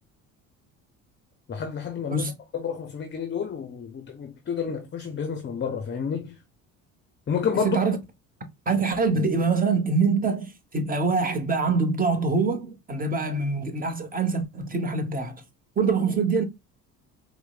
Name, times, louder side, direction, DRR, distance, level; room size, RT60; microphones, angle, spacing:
voice 1, 1.5-6.3 7.3-7.8, left 6 dB, 30° left, 0.6 m, -30 dB
voice 2, 7.5-8.0 8.7-15.4 15.8-16.4, right 4 dB, 20° right, 1.0 m, -24 dB
4.4 x 2.1 x 2.3 m
supercardioid pair, 70°, 39 cm